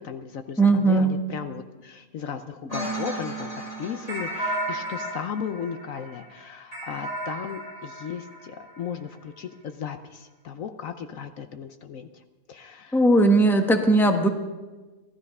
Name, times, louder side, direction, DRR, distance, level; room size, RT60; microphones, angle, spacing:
voice 1, 0.0-3.5 3.8-12.2 12.5-13.0, left 7 dB, 65° left, 8 dB, 1.1 m, -36 dB
voice 2, 0.6-1.1 12.9-14.3, right 2 dB, ahead, 4 dB, 1.1 m, -18 dB
sound 1, 2.7-8.8, right 1 dB, 25° left, 6.2 m, -34 dB
17.5 x 13.0 x 5.5 m, 1.2 s
omnidirectional pair, 1.6 m